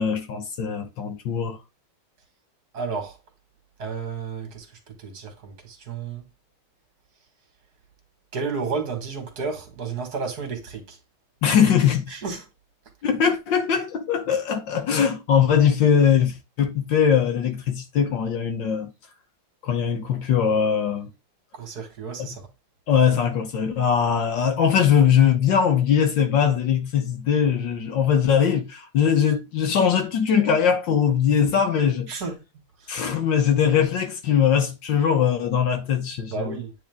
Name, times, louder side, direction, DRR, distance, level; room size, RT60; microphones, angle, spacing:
voice 1, 0.0-1.6 11.4-12.1 13.0-18.9 19.6-21.1 22.2-22.3 22.9-32.2 32.9-36.6, left 7 dB, 65° left, 1.5 m, -21 dB
voice 2, 2.7-3.2 3.8-6.2 8.3-11.0 12.1-12.4 21.5-22.5 32.1-32.4 36.3-36.7, right 5 dB, 50° right, 2.3 m, -32 dB
9.3 x 3.9 x 3.6 m
omnidirectional pair, 2.4 m